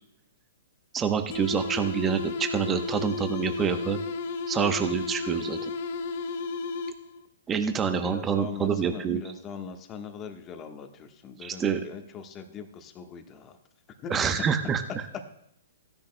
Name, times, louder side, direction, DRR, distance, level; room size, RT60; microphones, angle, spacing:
voice 1, 0.9-4.0 4.5-5.7 7.5-9.2 11.4-11.8 14.1-15.0, right 7 dB, 15° right, 7 dB, 0.9 m, -27 dB
sound 1, 1.3-7.3, left 3 dB, 55° left, 1.0 m, -33 dB
voice 2, 7.9-13.6 14.0-14.5, left 6 dB, 25° left, 6 dB, 1.2 m, -41 dB
15.5 x 10.5 x 2.2 m, 0.76 s
hypercardioid pair, 135°, 0 cm